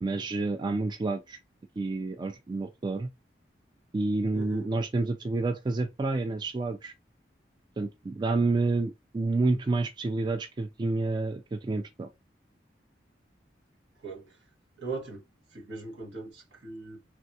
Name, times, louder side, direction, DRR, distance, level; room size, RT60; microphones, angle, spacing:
voice 1, 0.0-1.4 1.8-3.1 3.9-6.9 7.8-12.1, right 3 dB, 25° right, 0.3 m, -29 dB
voice 2, 4.3-4.7 14.0-14.4 14.8-15.2 15.5-17.0, right 3 dB, 80° right, 1.3 m, -39 dB
3.4 x 2.3 x 2.7 m
head